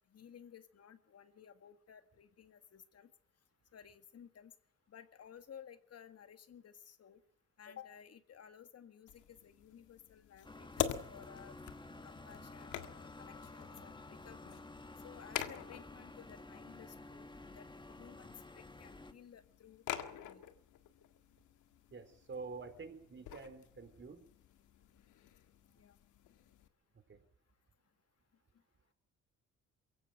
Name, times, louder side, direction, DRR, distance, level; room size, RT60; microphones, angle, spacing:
voice 1, 0.1-3.1 3.7-4.5 4.9-7.2 7.6-11.5 12.0-14.6 15.0-17.7 18.0-20.4 25.7-26.0, left 8 dB, 55° left, 10 dB, 1.9 m, -56 dB
sound 1, 9.1-26.7, left 11 dB, 85° left, 1.8 m, -47 dB
sound 2, 10.4-19.1, left 2 dB, 15° left, 1.9 m, -52 dB
voice 2, 21.9-24.2 27.1-27.2, right 4 dB, 40° right, 9 dB, 4.1 m, -48 dB
22.5 x 16.0 x 9.2 m, 0.63 s
cardioid pair, 90°, 30 cm